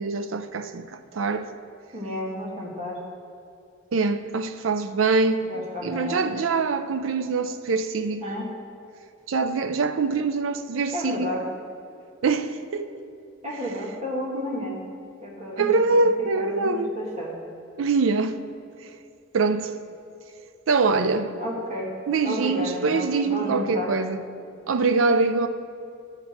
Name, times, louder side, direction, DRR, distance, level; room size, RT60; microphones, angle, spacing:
voice 1, 0.0-1.5 3.9-8.2 9.3-11.3 12.2-12.9 15.6-17.0 17.8-18.4 19.3-19.7 20.7-21.3 22.1-24.2 24.7-25.5, right 4 dB, 80° right, 0.5 m, -24 dB
voice 2, 1.9-3.0 5.3-6.3 8.2-8.5 10.9-11.4 13.4-14.8 15.2-15.7 16.4-17.4 21.4-21.9 22.2-23.9, left 1 dB, 30° right, 1.8 m, -32 dB
11.5 x 5.9 x 4.3 m
head